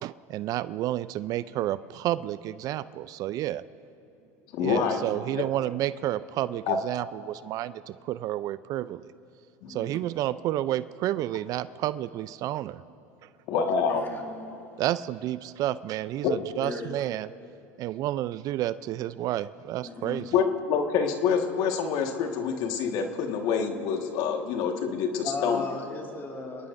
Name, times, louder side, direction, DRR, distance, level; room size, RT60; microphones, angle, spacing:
voice 1, 0.0-3.6 4.6-9.1 9.7-12.8 14.8-17.3 17.8-20.4, right 13 dB, 50° right, 16 dB, 0.4 m, -30 dB
voice 2, 4.5-5.0 5.3-5.4 6.7-6.8 9.6-9.7 13.5-14.0 16.2-16.3 20.3-25.6, left 6 dB, 60° left, 4 dB, 1.6 m, -26 dB
voice 3, 13.7-14.5 16.6-16.9 19.8-20.2 25.2-26.7, left 4 dB, 25° left, 0 dB, 2.7 m, -36 dB
27.0 x 19.0 x 2.6 m, 2.6 s
hypercardioid pair, 90°, 8 cm